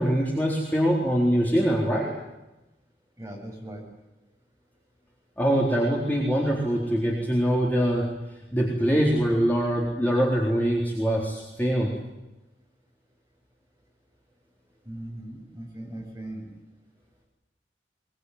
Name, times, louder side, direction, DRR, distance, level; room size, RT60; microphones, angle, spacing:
voice 1, 0.0-2.1 5.4-8.1 8.5-11.9, equal, 10° left, -3 dB, 4.0 m, -23 dB
voice 2, 3.2-3.8 14.8-16.5, right 1 dB, 15° right, -1 dB, 7.8 m, -39 dB
23.0 x 22.0 x 9.7 m, 0.98 s
head